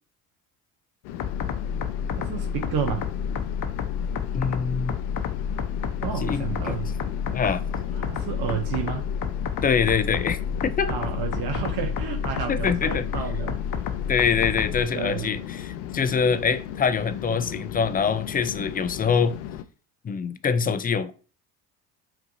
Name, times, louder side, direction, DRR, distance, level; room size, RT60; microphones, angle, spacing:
sound 1, 1.0-19.6, left 11 dB, 75° left, 0.5 m, -37 dB
sound 2, 1.2-14.8, left 7 dB, 45° left, 0.8 m, -30 dB
voice 1, 2.1-3.1 6.0-6.9 7.9-9.0 10.9-13.6 14.7-15.3, right 9 dB, 55° right, 0.7 m, -31 dB
voice 2, 4.3-5.0 6.2-6.8 7.3-7.6 9.6-10.9 12.5-13.0 14.1-19.4 20.0-21.1, left 6 dB, 20° left, 0.4 m, -24 dB
5.6 x 2.6 x 2.6 m
hypercardioid pair, 60°, 48 cm